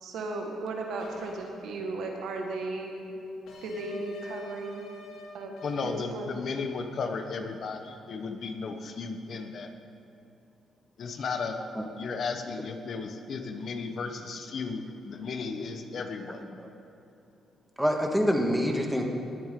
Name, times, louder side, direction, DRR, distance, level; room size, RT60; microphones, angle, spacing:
voice 1, 0.0-3.1 3.6-4.8 5.3-5.5 5.8-6.3, right 2 dB, 75° right, 2 dB, 1.6 m, -35 dB
sound 1, 1.0-1.3 3.5-5.3 5.6-5.9, left 3 dB, 80° left, 2.5 m, -46 dB
voice 2, 5.6-9.7 11.0-11.6 12.0-16.4, left 4 dB, 55° left, 6 dB, 1.0 m, -34 dB
voice 3, 17.8-19.1, equal, 5° right, 2 dB, 1.5 m, -26 dB
18.5 x 8.2 x 3.7 m, 2.8 s
cardioid pair, 90°, 0 cm